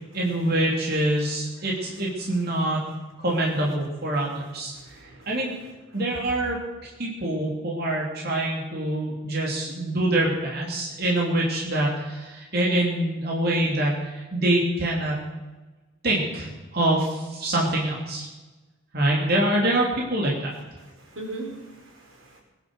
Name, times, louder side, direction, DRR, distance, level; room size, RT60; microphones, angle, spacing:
voice 1, 0.1-2.9 3.2-4.7 5.3-5.5 5.9-15.2 16.0-18.3 18.9-20.5, right 1 dB, 50° right, -3 dB, 3.5 m, -25 dB
voice 2, 4.7-5.5 20.8-22.4, right 2 dB, 80° right, 1 dB, 4.7 m, -40 dB
21.0 x 10.5 x 6.5 m, 1.2 s
head